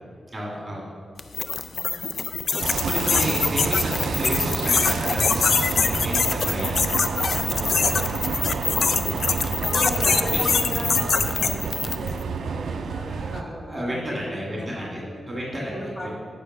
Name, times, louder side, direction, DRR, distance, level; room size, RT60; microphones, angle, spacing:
voice 1, 0.3-0.9 2.5-6.9 7.5-8.0 10.3-10.5 12.6-15.0 15.3-15.9, equal, 20° right, -5 dB, 1.9 m, -32 dB
sound 1, 1.2-12.1, left 5 dB, 60° left, 0.4 m, -24 dB
voice 2, 1.7-2.2 7.6-8.1 8.7-9.1 9.4-15.3 15.6-16.1, equal, 40° left, -4 dB, 2.1 m, -36 dB
sound 2, 2.6-13.4, right 5 dB, 85° right, 0.3 m, -29 dB
8.7 x 5.6 x 5.3 m, 2.2 s
wide cardioid pair, 135°, 0 cm